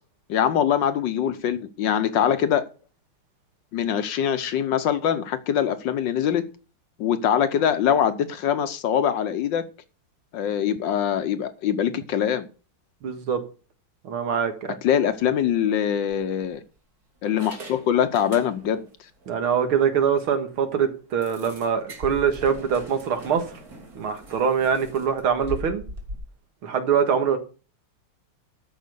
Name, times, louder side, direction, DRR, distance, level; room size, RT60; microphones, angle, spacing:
voice 1, 0.3-2.6 3.7-6.4 7.0-9.6 10.3-12.5 14.8-16.6 17.2-18.9, left 9 dB, 65° left, 1.4 m, -23 dB
voice 2, 13.0-13.4 14.0-14.8 19.3-23.6 24.0-25.8 26.6-27.4, right 7 dB, 75° right, 2.5 m, -23 dB
sound 1, 15.2-15.4 16.1-16.8 17.2-18.9 19.2-19.4 19.8-19.9 20.2-20.3 21.2-26.2, equal, 45° right, 2.7 m, -41 dB
13.0 x 5.5 x 6.7 m
omnidirectional pair, 2.3 m